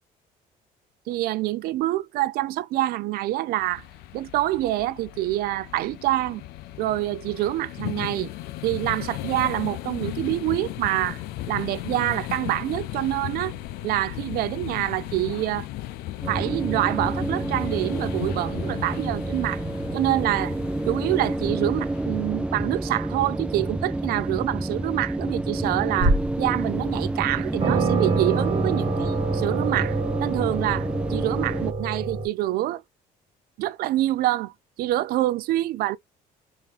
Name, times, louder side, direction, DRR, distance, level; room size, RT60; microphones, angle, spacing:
voice 1, 1.1-3.8 4.1-6.4 6.8-8.3 8.6-11.2 11.5-13.5 13.8-15.7 16.3-19.6 19.9-20.5 20.9-32.8 33.6-34.5 34.8-36.0, right 15 dB, 70° right, 0.5 m, -26 dB
sound 1, 3.6-22.7, left 15 dB, 80° left, 0.5 m, -36 dB
sound 2, 16.2-31.7, right 1 dB, 5° right, 0.6 m, -29 dB
sound 3, 26.0-26.5 27.1-27.2 27.6-32.3, right 3 dB, 35° right, 1.5 m, -26 dB
3.4 x 2.8 x 3.2 m
cardioid pair, 105°, 16 cm